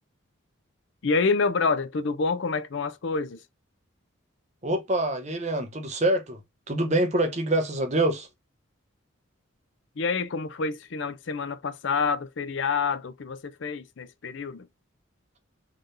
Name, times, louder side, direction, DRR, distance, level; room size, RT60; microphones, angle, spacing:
voice 1, 1.0-3.4 10.0-14.7, left 4 dB, 65° left, 0.5 m, -27 dB
voice 2, 4.6-6.4 6.7-8.3, right 1 dB, 35° right, 0.8 m, -25 dB
3.6 x 3.3 x 2.6 m
head